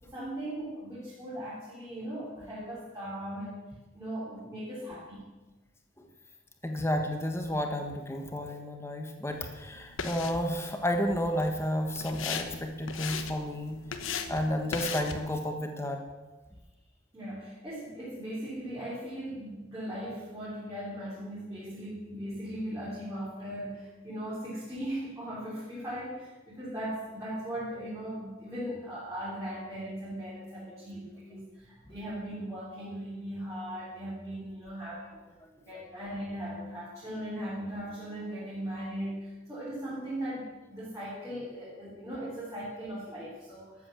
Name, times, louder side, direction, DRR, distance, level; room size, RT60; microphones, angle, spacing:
voice 1, 0.0-3.7 3.9-5.3 17.1-35.2 35.6-43.9, right 1 dB, 15° right, -9 dB, 4.0 m, -38 dB
voice 2, 6.6-13.8 14.3-16.0, equal, 10° left, 4 dB, 1.5 m, -31 dB
sound 1, 9.3-15.4, left 6 dB, 75° left, 1.2 m, -39 dB
13.5 x 8.7 x 7.3 m, 1.2 s
head